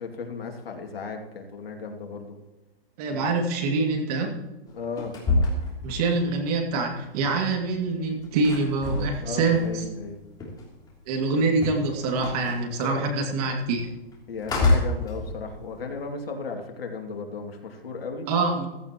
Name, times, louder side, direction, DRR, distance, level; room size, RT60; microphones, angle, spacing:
voice 1, 0.0-2.3 3.1-3.3 4.7-5.2 9.2-10.2 12.8-13.2 14.3-18.3, left 4 dB, 80° left, 3 dB, 2.6 m, -35 dB
voice 2, 3.0-4.4 5.8-9.6 11.1-13.9 18.3-18.7, right 3 dB, 40° right, 3 dB, 2.4 m, -25 dB
sound 1, 4.7-6.8 7.0-11.0 11.2-16.0, left 2 dB, 15° left, 3.0 m, -28 dB
15.0 x 14.0 x 3.0 m, 1.1 s
hypercardioid pair, 145°, 30 cm